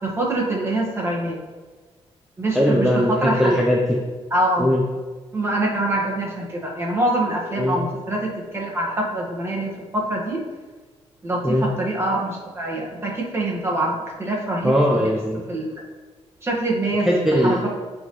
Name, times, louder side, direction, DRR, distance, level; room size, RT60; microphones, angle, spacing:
voice 1, 0.0-1.4 2.4-3.6 4.3-4.7 5.3-10.4 11.2-15.1 15.5-15.7 16.4-17.1 17.4-17.7, right 1 dB, 25° right, -3 dB, 1.6 m, -24 dB
voice 2, 2.5-4.0 4.6-4.8 7.6-7.8 11.4-11.7 14.6-15.4 17.0-17.7, equal, 5° right, -2 dB, 0.6 m, -19 dB
8.7 x 3.8 x 3.1 m, 1.3 s
cardioid pair, 110°, 11 cm